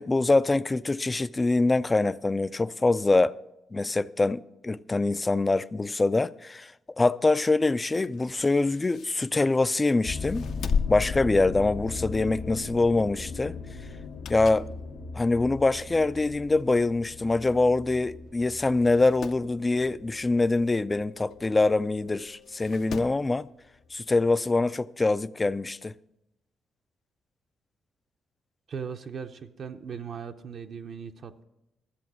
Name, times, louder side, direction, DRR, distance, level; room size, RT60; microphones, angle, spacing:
voice 1, 0.0-3.4 3.7-10.5 10.9-13.6 14.3-14.7 15.1-23.5 23.9-25.9, left 2 dB, 20° left, 0.3 m, -24 dB
sound 1, 7.8-9.7 10.2-12.1 12.4-12.6 13.9-14.8 15.2-15.3 16.2-16.3 16.5-16.6 16.8-16.9 17.8-18.0 18.3-18.4 18.8-19.5 21.3-21.4 22.4-23.3 24.6-24.7, left 6 dB, 65° left, 0.7 m, -36 dB
sound 2, 10.0-22.3 22.9-23.3 23.9-24.0 24.3-24.4, left 4 dB, 90° left, 1.3 m, -39 dB
sound 3, 12.5-24.2, left 5 dB, 85° right, 3.4 m, -57 dB
voice 2, 28.7-31.4, right 6 dB, 55° right, 0.7 m, -38 dB
13.0 x 7.7 x 6.2 m
cardioid pair, 90°, 0 cm